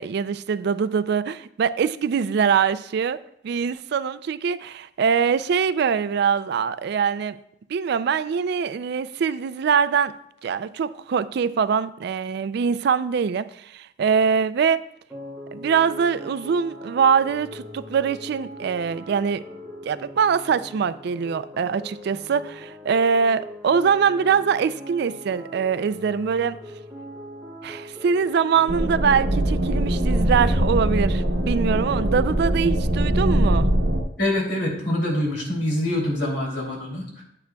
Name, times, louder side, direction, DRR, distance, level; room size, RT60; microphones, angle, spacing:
voice 1, 0.0-3.2 3.4-7.4 7.7-10.1 10.4-14.8 15.5-19.4 19.9-26.6 27.6-33.7, right 6 dB, 65° right, 0.3 m, -23 dB
sound 1, 15.1-32.2, left 1 dB, 5° right, 2.6 m, -41 dB
sound 2, 28.7-34.0, right 1 dB, 85° right, 1.2 m, -22 dB
voice 2, 34.2-37.2, left 1 dB, 70° left, 2.8 m, -25 dB
9.4 x 9.1 x 2.3 m
head